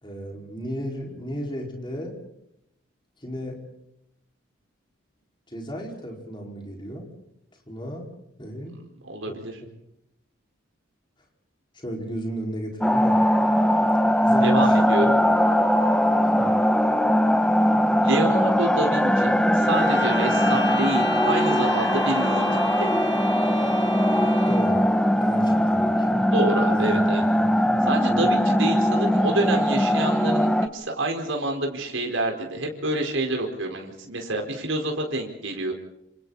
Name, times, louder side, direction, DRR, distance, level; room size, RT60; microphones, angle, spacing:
voice 1, 0.0-2.2 3.2-3.6 5.5-7.1 7.7-8.1 8.4-8.7 9.3-9.4 11.7-13.2 14.2-14.7 15.0-15.1 16.3-16.5 24.5-24.9 25.2-26.2 26.7-27.8 28.0-28.3, equal, 25° left, 0 dB, 5.0 m, -34 dB
voice 2, 9.0-9.5 14.4-15.2 18.0-22.4 22.8-22.9 26.3-27.2 27.9-35.7, right 2 dB, 75° right, 2 dB, 4.6 m, -27 dB
sound 1, 12.8-30.7, equal, 5° left, 1.0 m, -20 dB
sound 2, 19.5-24.8, equal, 65° left, 5.6 m, -33 dB
28.0 x 27.0 x 4.2 m, 0.80 s
head